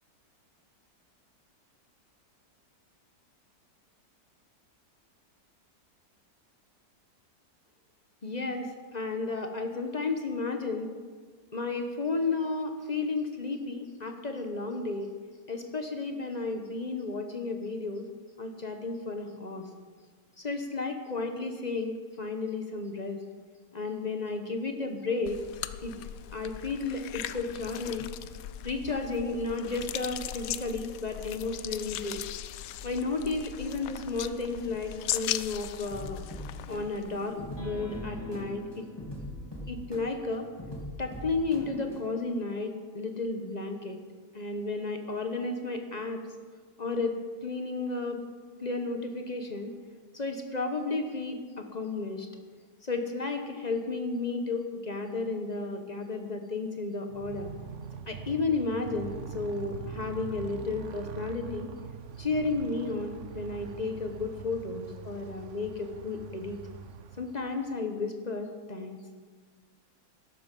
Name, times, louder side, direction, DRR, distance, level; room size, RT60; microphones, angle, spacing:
voice 1, 8.2-10.9 11.5-15.1 15.5-18.1 18.4-19.7 20.4-23.2 23.7-25.4 25.8-25.9 26.3-28.1 28.6-32.2 32.8-36.2 36.7-38.9 39.7-40.5 41.0-44.0 44.3-46.2 46.8-48.2 48.6-49.7 50.1-52.3 52.8-57.5 58.1-61.7 62.2-66.6 67.2-69.0, left 3 dB, 30° left, 5 dB, 0.8 m, -33 dB
sound 1, 25.3-37.5, left 12 dB, 70° left, 0.8 m, -39 dB
sound 2, 35.9-42.0, left 1 dB, 15° left, 2.4 m, -41 dB
Motorcycle, 57.1-67.7, right 7 dB, 65° right, 0.7 m, -43 dB
12.5 x 12.0 x 5.3 m, 1.5 s
omnidirectional pair, 1.9 m